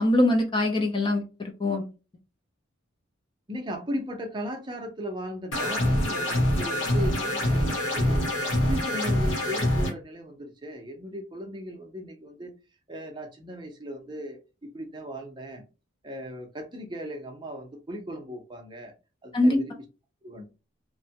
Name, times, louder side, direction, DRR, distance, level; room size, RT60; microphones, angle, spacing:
voice 1, 0.0-1.9 19.3-19.6, left 1 dB, 25° left, 2 dB, 0.5 m, -23 dB
voice 2, 3.5-8.2 8.6-12.5 12.9-15.6 16.0-18.9 19.2-19.8 20.2-20.4, equal, 20° right, 3 dB, 0.6 m, -37 dB
sound 1, 5.5-9.9, left 1 dB, 75° left, 1.1 m, -25 dB
3.0 x 2.2 x 2.8 m, 0.30 s
head